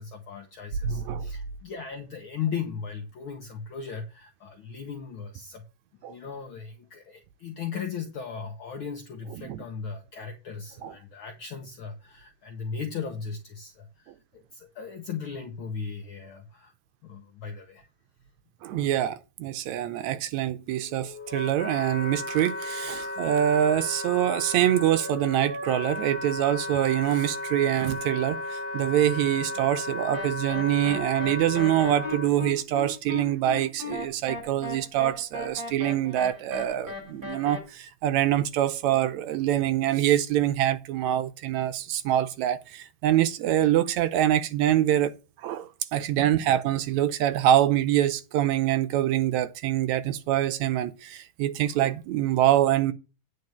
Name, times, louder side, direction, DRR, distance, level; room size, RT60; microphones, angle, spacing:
voice 1, 0.0-5.7 6.0-16.7 17.0-17.9 46.2-46.3, left 6 dB, 70° left, 1.2 m, -37 dB
voice 2, 0.8-1.3 6.0-6.2 9.5-9.6 10.8-10.9 18.6-52.9, right 12 dB, 80° right, 1.8 m, -25 dB
Wind instrument woodwind instrument, 20.7-32.3, left 2 dB, 50° left, 1.2 m, -34 dB
sound 1, 30.1-37.6, left 3 dB, 25° right, 5.0 m, -37 dB
9.6 x 4.7 x 6.8 m
omnidirectional pair, 3.6 m